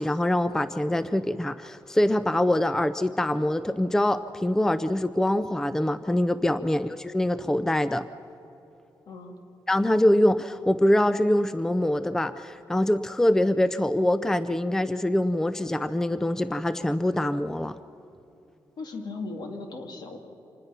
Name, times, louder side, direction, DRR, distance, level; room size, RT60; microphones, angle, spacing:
voice 1, 0.0-8.1 9.7-17.8, left 1 dB, 5° left, 13 dB, 0.5 m, -24 dB
voice 2, 9.1-9.4 18.8-20.2, left 3 dB, 65° left, 3 dB, 2.6 m, -37 dB
26.5 x 20.0 x 5.8 m, 2.9 s
cardioid pair, 120°, 8 cm